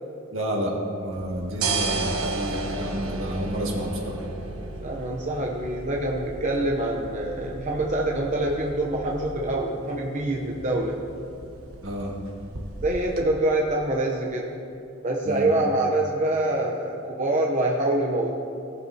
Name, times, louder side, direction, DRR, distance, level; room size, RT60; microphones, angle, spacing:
voice 1, 0.3-4.2 11.8-12.1 15.2-15.5, equal, 70° right, -2 dB, 1.8 m, -29 dB
sound 1, 1.1-13.2, right 3 dB, 85° right, 1.1 m, -34 dB
voice 2, 4.8-11.0 12.8-14.6 15.0-18.3, right 1 dB, 35° right, -1 dB, 0.7 m, -25 dB
17.5 x 8.0 x 2.8 m, 2.7 s
head